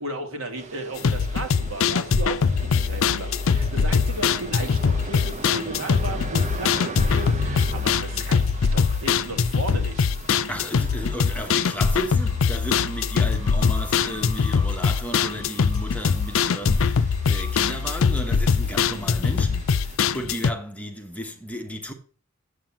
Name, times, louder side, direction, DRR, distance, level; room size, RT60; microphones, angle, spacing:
voice 1, 0.0-10.1, right 2 dB, 80° right, 2.3 m, -35 dB
sound 1, 0.6-20.0, right 3 dB, 35° right, 0.8 m, -40 dB
sound 2, 1.0-20.5, left 5 dB, 70° left, 0.5 m, -22 dB
voice 2, 10.4-21.9, equal, 5° left, 1.2 m, -34 dB
sound 3, 11.5-18.2, left 1 dB, 20° right, 5.0 m, -46 dB
7.9 x 7.5 x 7.3 m
head